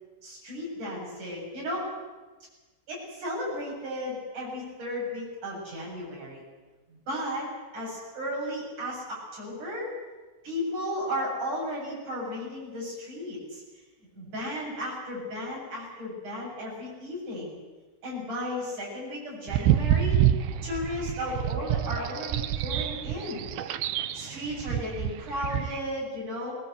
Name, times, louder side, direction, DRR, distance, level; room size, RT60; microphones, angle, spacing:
voice 1, 0.2-1.9 2.9-6.4 6.9-7.5 7.7-9.9 10.4-13.6 14.1-17.6 18.0-20.2 20.6-23.7 24.1-26.6, left 1 dB, 50° right, -3 dB, 9.2 m, -34 dB
sound 1, 19.5-25.8, right 11 dB, 80° right, 2.7 m, -27 dB
21.5 x 19.5 x 8.0 m, 1.3 s
omnidirectional pair, 4.4 m